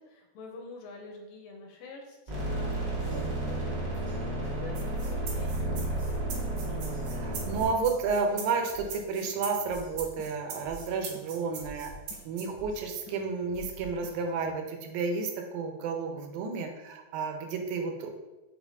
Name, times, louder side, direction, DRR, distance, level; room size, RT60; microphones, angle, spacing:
voice 1, 0.0-6.3 6.6-7.2, left 3 dB, 80° left, 2 dB, 2.5 m, -47 dB
sound 1, 2.3-7.7, right 1 dB, 45° right, 0.8 m, -32 dB
sound 2, 3.0-14.5, left 1 dB, 30° left, 0.5 m, -49 dB
sound 3, 4.8-12.5, right 5 dB, 70° right, 1.6 m, -41 dB
voice 2, 7.1-11.9 12.3-18.1, right 4 dB, 85° right, 4 dB, 2.5 m, -31 dB
6.7 x 3.5 x 4.1 m, 1.1 s
omnidirectional pair, 4.0 m